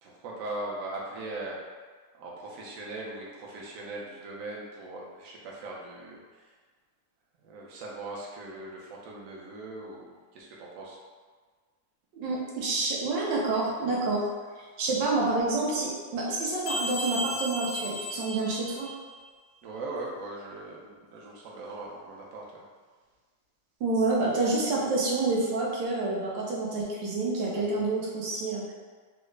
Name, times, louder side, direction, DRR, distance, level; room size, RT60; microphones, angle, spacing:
voice 1, 0.0-1.6 2.1-6.5 7.4-11.0 19.6-22.6, right 2 dB, 65° right, -3 dB, 0.8 m, -40 dB
voice 2, 12.1-14.3 14.8-18.9 23.8-28.8, right 3 dB, 80° right, -5 dB, 1.5 m, -28 dB
sound 1, 16.7-19.2, equal, 75° left, 1.2 m, -34 dB
3.6 x 2.1 x 3.1 m, 1.5 s
omnidirectional pair, 2.0 m